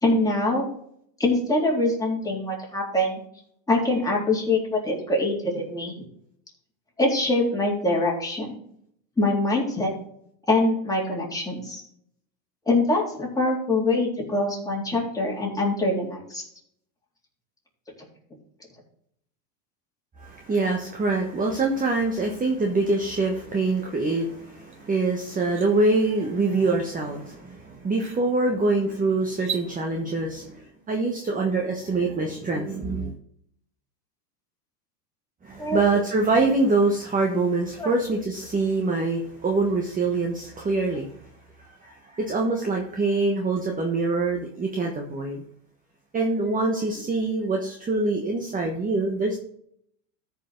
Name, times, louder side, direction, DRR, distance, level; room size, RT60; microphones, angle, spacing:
voice 1, 0.0-0.7 1.2-3.2 3.7-5.9 7.0-8.6 9.2-9.9 10.5-11.8 12.7-16.4 35.6-35.8 37.8-37.9, left 2 dB, 5° left, -3 dB, 3.7 m, -24 dB
voice 2, 20.2-33.1 35.4-41.1 41.8-45.4 46.1-49.4, right 3 dB, 15° right, 2 dB, 1.3 m, -25 dB
sound 1, 24.7-24.8 25.2-25.7 27.3-27.4 27.9-28.2 29.3-29.7, right 7 dB, 35° right, 2.6 m, -35 dB
13.5 x 5.7 x 3.9 m, 0.69 s
hypercardioid pair, 105°, 49 cm